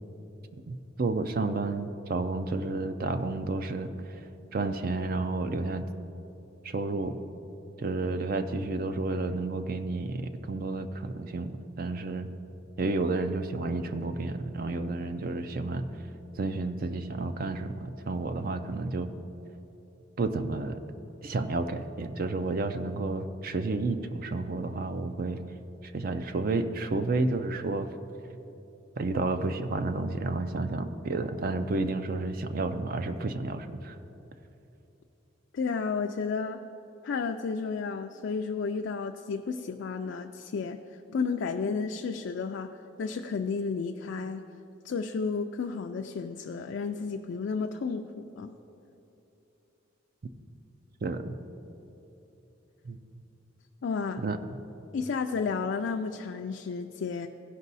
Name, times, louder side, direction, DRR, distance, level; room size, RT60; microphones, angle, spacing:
voice 1, 0.7-4.2 4.5-5.9 6.6-7.2 7.8-12.3 12.8-15.9 16.4-19.1 20.2-20.8 21.2-25.4 25.8-27.9 29.0-34.0 51.0-51.4 52.8-53.0 54.2-54.4, right 3 dB, 50° right, 9 dB, 0.4 m, -31 dB
voice 2, 35.5-36.6 37.0-40.8 41.1-42.7 43.0-44.4 44.8-48.6 53.8-54.2 54.9-57.3, left 5 dB, 65° left, 4 dB, 0.4 m, -32 dB
16.0 x 5.4 x 4.1 m, 3.0 s
head